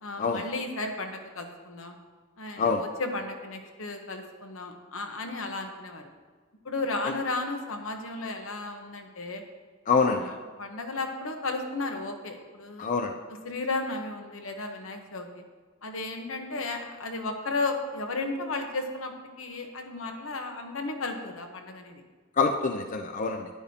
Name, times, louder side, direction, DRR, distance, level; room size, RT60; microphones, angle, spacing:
voice 1, 0.0-2.0 2.4-6.1 6.6-9.4 10.0-12.9 13.3-15.4 15.8-22.0, left 3 dB, 80° left, 4 dB, 1.0 m, -34 dB
voice 2, 9.9-10.2 12.8-13.1 22.4-23.5, left 4 dB, 40° left, 5 dB, 0.4 m, -25 dB
11.0 x 9.4 x 2.8 m, 1.5 s
head